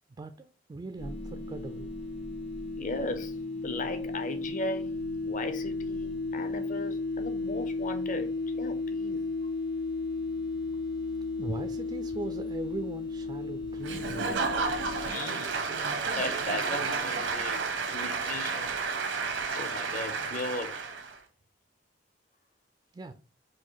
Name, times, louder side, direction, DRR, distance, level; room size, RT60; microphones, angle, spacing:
voice 1, 0.2-1.9 11.4-14.3 22.9-23.1, right 2 dB, 25° right, 0.3 m, -39 dB
sound 1, 1.0-15.1, left 3 dB, 80° left, 1.8 m, -34 dB
voice 2, 2.8-3.4 3.6-4.9 5.2-9.2 15.0-15.5 16.2-17.6 17.9-18.8 19.2-20.8, left 2 dB, 45° left, 0.6 m, -37 dB
Applause / Crowd, 13.8-21.2, right 4 dB, 80° right, 0.8 m, -31 dB
4.5 x 2.6 x 3.9 m
head